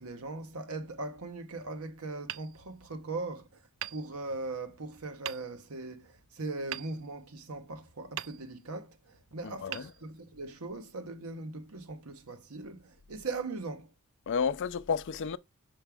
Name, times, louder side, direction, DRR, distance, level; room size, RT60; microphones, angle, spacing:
voice 1, 0.0-3.6 3.9-13.9, right 3 dB, 90° right, 1.0 m, -40 dB
Hammer, 2.2-3.3 3.8-4.7 5.2-5.9 6.7-7.7 8.1-8.9 9.7-10.6, right 12 dB, 65° right, 0.4 m, -43 dB
voice 2, 9.4-9.9 14.3-15.4, left 6 dB, 60° left, 0.4 m, -31 dB
5.9 x 5.2 x 3.4 m
head